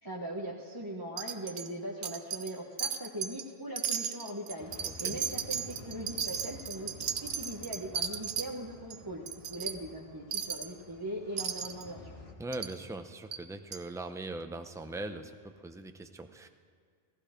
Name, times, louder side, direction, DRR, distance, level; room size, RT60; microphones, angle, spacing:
voice 1, 0.0-12.2, right 1 dB, 20° right, -3 dB, 1.2 m, -40 dB
Wind chime, 1.2-1.7 2.0-2.5 2.8-3.4 3.8-8.5 8.9-9.0 9.3-9.7 10.3-10.7 11.4-11.8 12.5-12.7 13.3-13.4 13.7-13.8, right 8 dB, 75° right, 0.9 m, -35 dB
sound 1, 4.6-12.3, left 1 dB, 70° left, 1.8 m, -51 dB
voice 2, 4.8-5.2 12.4-16.5, right 2 dB, 5° right, 7 dB, 0.5 m, -41 dB
17.0 x 15.0 x 5.1 m, 2.1 s
omnidirectional pair, 1.1 m